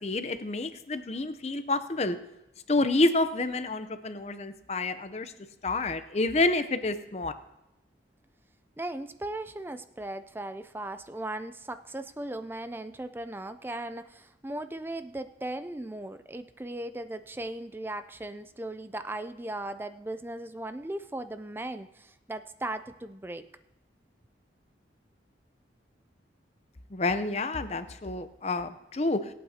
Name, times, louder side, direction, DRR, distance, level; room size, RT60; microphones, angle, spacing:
voice 1, 0.0-2.2 2.7-5.3 5.6-7.3 26.9-29.2, left 2 dB, 35° left, 10 dB, 0.7 m, -28 dB
voice 2, 8.8-23.5, right 1 dB, 10° right, 11 dB, 0.4 m, -37 dB
25.5 x 8.5 x 2.8 m, 0.93 s
head